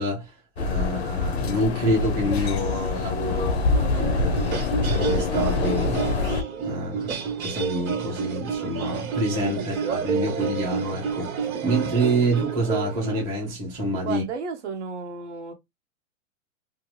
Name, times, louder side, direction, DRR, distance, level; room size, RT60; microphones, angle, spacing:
voice 1, 0.0-3.7 3.9-6.1 6.6-14.2, right 1 dB, 15° right, 0.8 m, -27 dB
sound 1, 0.6-6.4, left 3 dB, 50° left, 0.5 m, -25 dB
sound 2, 3.7-13.2, right 6 dB, 85° right, 1.3 m, -30 dB
voice 2, 9.6-10.1 14.0-15.5, right 5 dB, 55° right, 0.8 m, -34 dB
2.6 x 2.4 x 3.0 m
hypercardioid pair, 180°, 41 cm